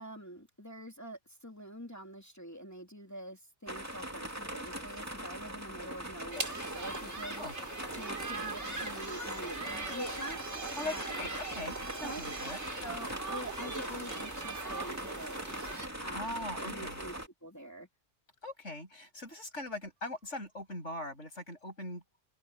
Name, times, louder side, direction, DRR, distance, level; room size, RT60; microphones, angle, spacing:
voice 1, 0.0-7.4 7.9-11.3 12.0-12.2 12.5-12.6 12.8-15.7 16.0-17.1 17.4-17.9, equal, 15° left, 2.9 m, -46 dB
sound 1, 3.7-17.3, right 1 dB, 15° right, 2.9 m, -42 dB
sound 2, 6.3-15.9, right 3 dB, 70° right, 3.8 m, -40 dB
voice 2, 10.8-12.7 16.1-17.0 18.4-22.0, left 2 dB, 90° left, 8.1 m, -41 dB
omnidirectional pair, 1.2 m